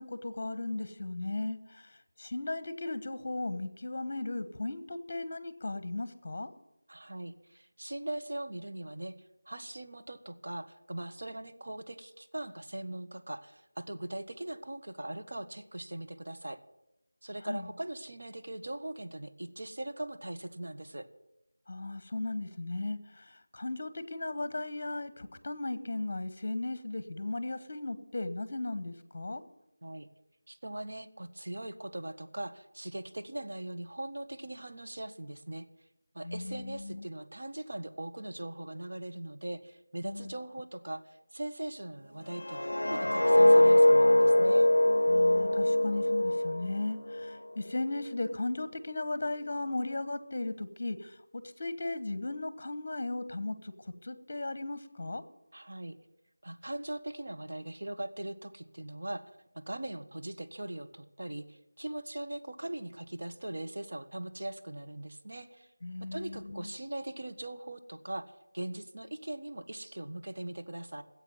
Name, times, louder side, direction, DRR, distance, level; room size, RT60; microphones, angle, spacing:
voice 1, 0.0-6.5 17.4-17.7 21.7-29.4 36.2-37.1 40.0-40.3 45.1-55.2 65.8-66.7, left 2 dB, 35° left, 13 dB, 1.2 m, -36 dB
voice 2, 6.9-9.1 9.4-16.6 17.2-21.1 29.8-30.1 30.5-35.7 36.1-44.7 55.5-56.0 56.4-59.2 59.5-65.7 66.0-68.2 68.5-71.0, right 1 dB, 60° right, 7 dB, 1.4 m, -40 dB
sound 1, 42.3-47.4 47.7-48.0, left 1 dB, 85° left, 0.4 m, -23 dB
15.5 x 8.0 x 9.3 m, 0.93 s
figure-of-eight pair, 175°, 0 cm